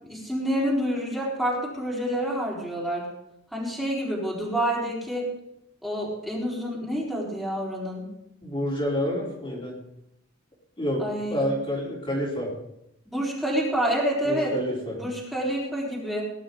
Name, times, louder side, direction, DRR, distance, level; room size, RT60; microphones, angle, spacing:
voice 1, 0.0-3.1 3.5-5.3 5.8-8.0 11.0-11.5 13.1-14.5 14.9-16.2, equal, ahead, -6 dB, 4.2 m, -28 dB
voice 2, 8.4-9.8 10.8-11.0 11.3-12.5 14.3-15.0, equal, 25° left, -5 dB, 3.8 m, -28 dB
19.5 x 11.0 x 3.9 m, 0.85 s
head